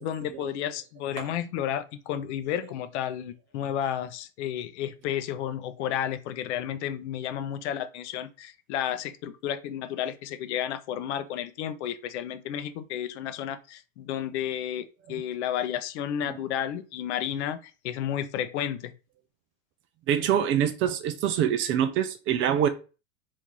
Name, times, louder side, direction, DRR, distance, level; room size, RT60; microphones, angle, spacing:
voice 1, 0.0-14.8 15.1-18.9, left 10 dB, 60° left, 0.6 m, -32 dB
voice 2, 20.1-22.7, right 9 dB, 35° right, 0.4 m, -25 dB
3.1 x 2.6 x 3.7 m
hypercardioid pair, 95°, 38 cm